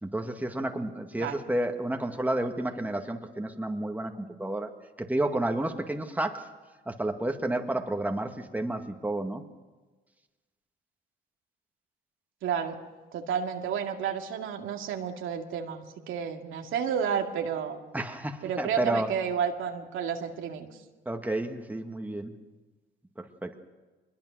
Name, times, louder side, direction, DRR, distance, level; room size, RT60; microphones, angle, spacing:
voice 1, 0.0-4.7 5.0-6.5 6.9-9.4 17.9-19.1 21.1-22.3 23.2-23.6, right 1 dB, 10° right, 4 dB, 1.9 m, -31 dB
voice 2, 12.4-12.8 13.1-17.8 18.4-20.7, right 7 dB, 85° right, 3 dB, 2.2 m, -31 dB
23.5 x 21.0 x 6.3 m, 1.3 s
cardioid pair, 90°, 20 cm